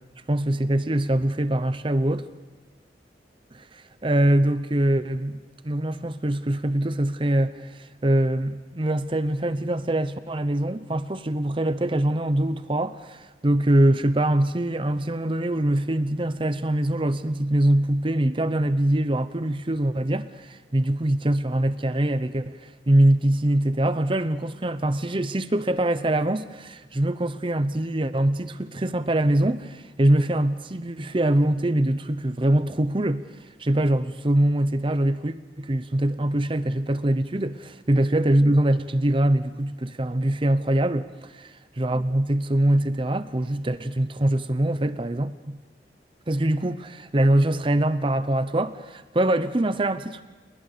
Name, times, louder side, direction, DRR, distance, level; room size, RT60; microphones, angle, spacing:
voice 1, 0.3-2.3 3.5-5.4 5.6-33.2 33.6-45.6 46.3-50.2, right 1 dB, 30° right, 0.8 m, -23 dB
29.0 x 20.5 x 6.8 m
head